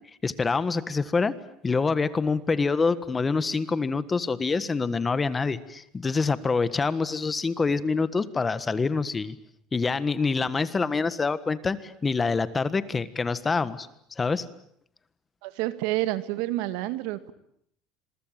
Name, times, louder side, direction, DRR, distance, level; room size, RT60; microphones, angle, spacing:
voice 1, 0.2-1.4 1.6-9.3 9.7-13.9 14.2-14.4, left 4 dB, 20° left, 14 dB, 1.5 m, -26 dB
voice 2, 15.4-17.3, right 16 dB, 80° right, 12 dB, 2.1 m, -29 dB
27.0 x 22.5 x 9.2 m, 0.70 s
supercardioid pair, 120°, 0 cm